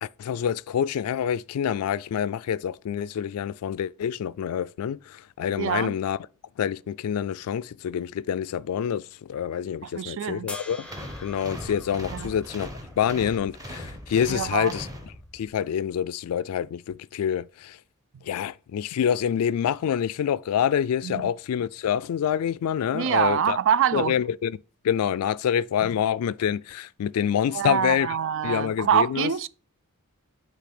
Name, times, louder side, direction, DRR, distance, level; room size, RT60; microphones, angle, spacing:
voice 1, 0.0-6.2 6.6-10.9 11.2-12.7 13.0-14.9 15.3-17.8 18.2-23.6 23.9-24.6 24.8-28.2 28.4-29.3, left 8 dB, 80° left, 0.3 m, -27 dB
voice 2, 5.6-6.0 9.8-10.5 12.1-12.3 14.3-14.7 21.0-21.3 22.9-24.1 25.8-25.9 27.5-29.5, right 8 dB, 60° right, 0.4 m, -25 dB
sound 1, 10.5-13.7 15.8-15.9, left 2 dB, 5° left, 0.6 m, -44 dB
sound 2, 10.8-15.6, equal, 15° right, 1.2 m, -39 dB
8.3 x 3.3 x 5.9 m
head